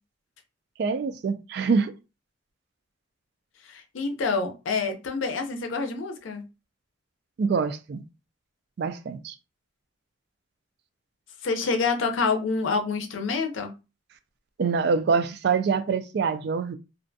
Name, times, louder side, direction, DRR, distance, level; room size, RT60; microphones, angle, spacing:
voice 1, 0.8-1.9 7.4-8.0 8.8-9.3 14.6-16.8, right 5 dB, 55° right, 0.3 m, -25 dB
voice 2, 3.6-6.5 11.4-13.7, left 4 dB, 80° left, 0.5 m, -27 dB
2.4 x 2.2 x 2.6 m
head